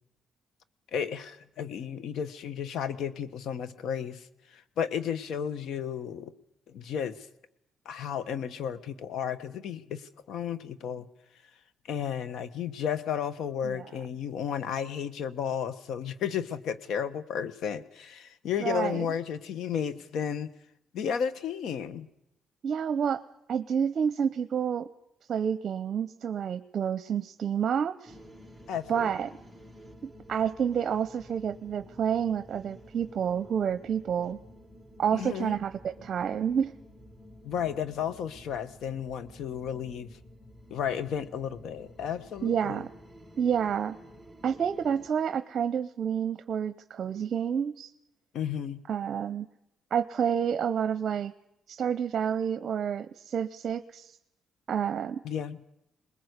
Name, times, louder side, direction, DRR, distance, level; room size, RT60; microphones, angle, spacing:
voice 1, 0.9-6.3 6.7-7.3 7.8-11.1 11.8-20.5 20.9-22.1 28.7-29.1 35.1-35.6 37.4-40.1 40.7-42.8 48.3-48.8 55.2-55.6, left 8 dB, 75° left, 15 dB, 1.3 m, -33 dB
voice 2, 18.6-19.1 22.6-23.2 23.5-24.9 25.3-28.1 28.9-29.3 30.0-34.4 35.0-36.7 42.4-42.9 43.4-44.0 44.4-47.9 48.9-49.5 49.9-51.3 51.7-54.1 54.7-55.2, right 8 dB, 55° right, 12 dB, 0.8 m, -29 dB
sound 1, 28.1-45.1, equal, 5° left, 2.3 m, -51 dB
22.5 x 20.5 x 8.2 m, 0.80 s
cardioid pair, 90°, 0 cm